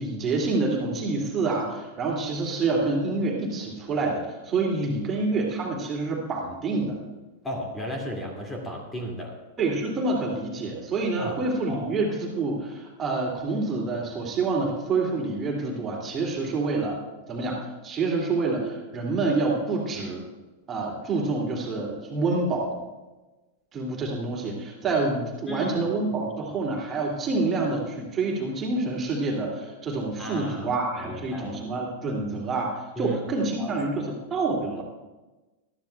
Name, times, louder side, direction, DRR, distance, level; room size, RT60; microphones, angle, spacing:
voice 1, 0.0-7.0 9.6-17.0 17.3-20.2 20.7-22.8 23.7-34.8, right 3 dB, 25° right, -2 dB, 2.6 m, -27 dB
voice 2, 7.4-9.4 11.2-11.4 11.7-11.9 25.5-25.9 30.2-31.6 33.0-33.8 34.3-34.4, equal, 15° left, 0 dB, 2.3 m, -35 dB
20.5 x 13.0 x 2.3 m, 1.1 s
figure-of-eight pair, 95°, 0 cm